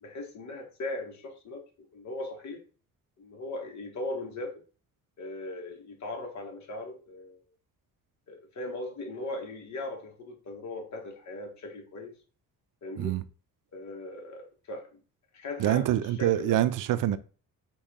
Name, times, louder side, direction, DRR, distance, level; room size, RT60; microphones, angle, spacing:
voice 1, 0.0-1.6 1.9-2.6 3.2-4.6 5.2-7.5 8.3-12.2 12.8-13.1 13.7-15.0 15.3-15.9 16.2-16.6, left 2 dB, 50° left, 1.4 m, -38 dB
voice 2, 15.6-17.2, right 12 dB, 65° right, 0.5 m, -25 dB
4.4 x 3.0 x 3.7 m
cardioid pair, 125°, 35 cm